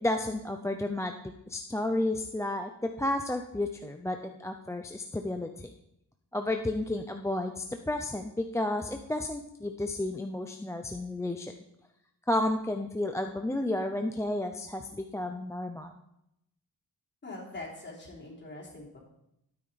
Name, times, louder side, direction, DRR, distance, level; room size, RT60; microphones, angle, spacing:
voice 1, 0.0-5.7 6.3-11.5 12.3-15.9, left 1 dB, 10° left, 4 dB, 0.4 m, -32 dB
voice 2, 17.2-19.0, left 2 dB, 25° left, -5 dB, 3.5 m, -43 dB
12.5 x 9.0 x 4.0 m, 0.81 s
wide cardioid pair, 170°, 39 cm